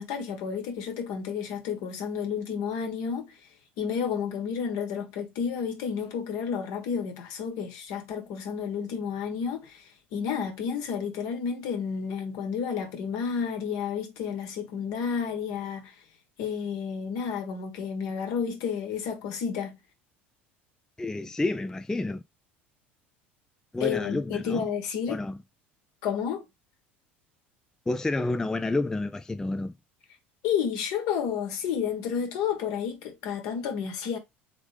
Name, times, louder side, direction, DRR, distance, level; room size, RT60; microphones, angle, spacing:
voice 1, 0.0-3.4 3.8-16.0 16.4-19.8 23.8-25.2 26.0-26.4 30.4-34.2, left 7 dB, 65° left, 1.4 m, -31 dB
voice 2, 21.0-22.2 23.7-24.7 25.1-25.4 27.9-29.7, left 2 dB, 10° left, 0.3 m, -29 dB
3.6 x 3.5 x 3.4 m
hypercardioid pair, 75°, 6 cm